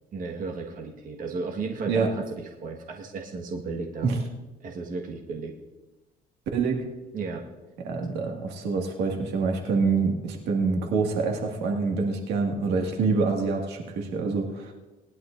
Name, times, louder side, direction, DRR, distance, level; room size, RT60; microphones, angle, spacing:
voice 1, 0.1-4.1 4.6-5.5 7.1-7.5 8.0-8.1, right 4 dB, 55° right, 1 dB, 1.6 m, -34 dB
voice 2, 6.5-6.8 7.8-14.7, right 4 dB, 85° right, 1 dB, 2.0 m, -26 dB
20.0 x 11.0 x 2.6 m, 1.1 s
cardioid pair, 110°, 17 cm